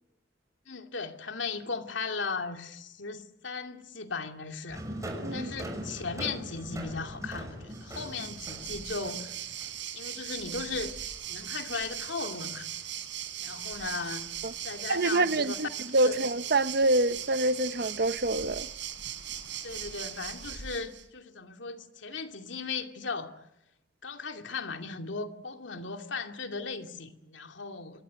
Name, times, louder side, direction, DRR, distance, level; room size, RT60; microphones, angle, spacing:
voice 1, 0.7-4.8 5.3-9.4 9.9-12.7 13.4-14.3 14.6-15.6 16.0-16.2 19.6-23.3 24.0-28.0, left 4 dB, 75° left, 2.6 m, -37 dB
sound 1, 4.7-9.7, right 1 dB, 15° right, 6.1 m, -40 dB
Waves surf, 7.7-21.0, right 10 dB, 75° right, 4.4 m, -39 dB
voice 2, 14.9-18.7, right 2 dB, 55° right, 0.9 m, -26 dB
26.5 x 22.5 x 9.8 m
head